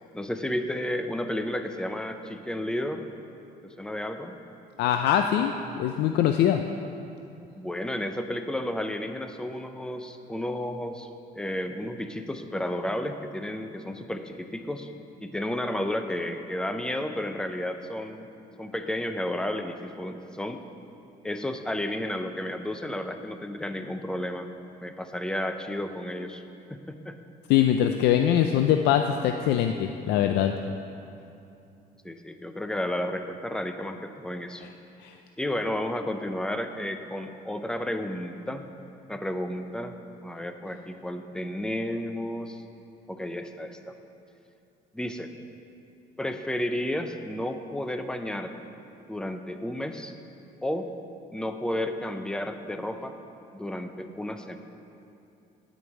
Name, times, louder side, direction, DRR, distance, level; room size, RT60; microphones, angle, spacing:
voice 1, 0.1-3.0 3.6-4.4 7.5-11.1 11.3-14.9 15.2-18.3 18.6-20.6 21.2-24.5 24.8-26.4 26.7-27.2 32.0-34.6 35.4-38.7 39.1-39.9 40.2-42.6 43.1-43.9 44.9-45.3 46.2-48.5 49.1-50.1 50.6-50.9 51.3-53.2 53.5-54.6, left 1 dB, 5° left, 7 dB, 0.6 m, -32 dB
voice 2, 4.8-5.5 5.8-6.6 27.5-30.5 35.0-35.1, left 10 dB, 80° left, 6 dB, 0.5 m, -22 dB
9.7 x 5.3 x 8.0 m, 2.7 s
cardioid pair, 110°, 17 cm